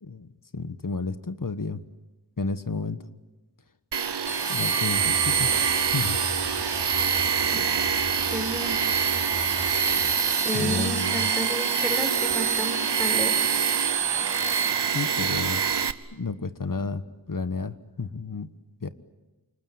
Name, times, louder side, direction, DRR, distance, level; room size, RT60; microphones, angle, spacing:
voice 1, 0.0-1.8 2.4-3.0 4.4-5.6 5.9-6.2 10.5-11.3 14.9-15.6 16.1-18.5 18.8-18.9, left 4 dB, 55° left, 12 dB, 1.4 m, -31 dB
Tools, 3.9-15.9, right 7 dB, 85° right, 1.0 m, -26 dB
sound 1, 4.3-14.7, right 6 dB, 65° right, 2.7 m, -30 dB
sound 2, 4.9-10.1, right 1 dB, 35° right, 4.8 m, -40 dB
voice 2, 8.2-8.8 10.4-13.6, equal, ahead, 7 dB, 4.8 m, -32 dB
28.5 x 20.0 x 9.6 m, 1.2 s
wide cardioid pair, 45°, 40 cm